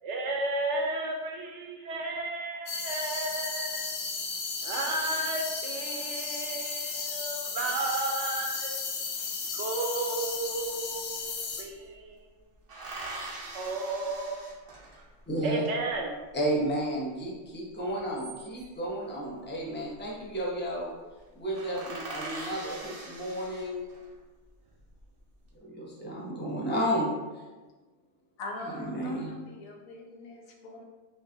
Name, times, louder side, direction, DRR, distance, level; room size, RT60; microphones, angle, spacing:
voice 1, 0.0-3.9 4.6-8.7 9.5-12.2 13.5-14.5 15.4-16.1, right 2 dB, 65° right, 1 dB, 0.8 m, -33 dB
sound 1, 2.7-11.6, left 4 dB, 65° left, 0.7 m, -34 dB
sound 2, 10.6-10.7 10.9-11.9 12.7-15.2 17.9-18.9 20.0-20.4 20.7-20.8 21.2-21.3 21.5-24.1 24.7-25.3, right 2 dB, 45° right, 0.4 m, -42 dB
voice 2, 15.3-15.6 16.3-20.9 21.4-23.9 25.6-27.1 28.9-29.3, equal, 15° left, -4 dB, 0.4 m, -32 dB
voice 3, 28.4-30.8, left 2 dB, 85° left, 0 dB, 1.1 m, -42 dB
5.2 x 2.5 x 2.6 m, 1.3 s
omnidirectional pair, 1.4 m